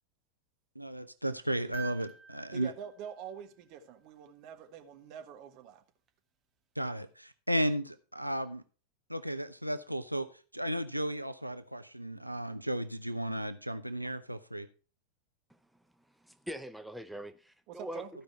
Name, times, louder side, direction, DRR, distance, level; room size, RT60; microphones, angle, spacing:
voice 1, 0.8-2.7 6.8-8.6 9.1-10.3 10.5-14.7, equal, 90° right, 0.5 m, -34 dB
sound 1, 1.7-4.1 6.1-6.2, right 6 dB, 25° right, 1.6 m, -48 dB
voice 2, 2.5-5.8 17.7-18.1, right 8 dB, 45° right, 1.4 m, -45 dB
voice 3, 16.0-18.0, equal, ahead, 0.5 m, -43 dB
14.0 x 5.3 x 4.5 m
figure-of-eight pair, 90°, 0 cm